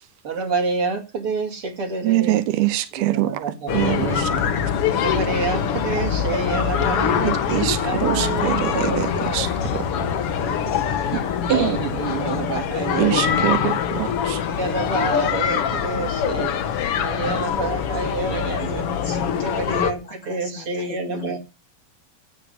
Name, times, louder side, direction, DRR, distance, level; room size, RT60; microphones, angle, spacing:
voice 1, 0.2-2.4 3.0-4.5 4.9-7.4 7.8-9.4 9.8-10.6 10.9-13.5 14.4-16.5 17.0-18.9 19.3-21.4, right 4 dB, 40° right, 2.8 m, -28 dB
voice 2, 2.0-3.5 3.7-4.3 7.2-9.8 13.0-14.4, right 15 dB, 90° right, 3.0 m, -24 dB
sound 1, 3.7-19.9, left 8 dB, 70° left, 1.3 m, -24 dB
voice 3, 18.7-19.9 20.4-21.4, left 3 dB, 40° left, 1.7 m, -39 dB
16.0 x 6.2 x 7.8 m
omnidirectional pair, 4.4 m